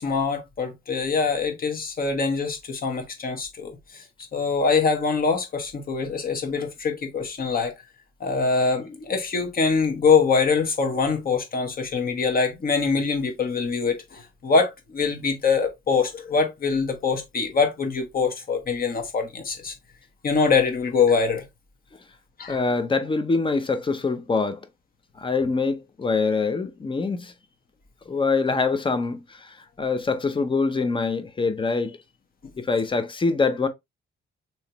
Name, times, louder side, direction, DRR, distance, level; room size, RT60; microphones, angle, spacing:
voice 1, 0.0-4.0 4.3-7.7 8.2-19.7 20.2-21.4 22.4-22.6, left 5 dB, 45° left, 1.2 m, -24 dB
voice 2, 22.5-24.6 25.2-27.3 28.1-32.0 32.6-33.7, left 4 dB, 25° left, 0.7 m, -24 dB
3.1 x 2.9 x 2.9 m
cardioid pair, 90°, 20 cm